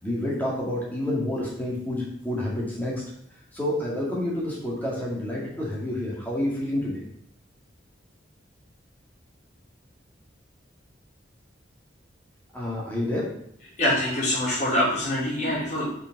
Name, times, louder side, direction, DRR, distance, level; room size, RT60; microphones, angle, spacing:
voice 1, 0.0-3.0 3.5-7.0 12.5-13.3, left 1 dB, 10° left, -5 dB, 2.0 m, -29 dB
voice 2, 13.8-15.8, left 1 dB, 40° left, -7 dB, 3.1 m, -24 dB
5.5 x 5.2 x 4.6 m, 0.69 s
head